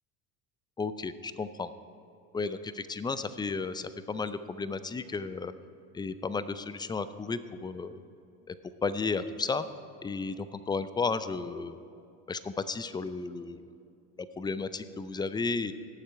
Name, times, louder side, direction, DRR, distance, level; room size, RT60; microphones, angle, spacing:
voice 1, 0.8-1.7 2.3-5.5 5.9-8.0 8.5-8.6 8.8-9.6 10.0-11.8 12.3-13.6 14.2-15.7, left 4 dB, 10° left, 13 dB, 0.4 m, -33 dB
17.5 x 7.3 x 4.6 m, 2.6 s
hypercardioid pair, 70°, 45 cm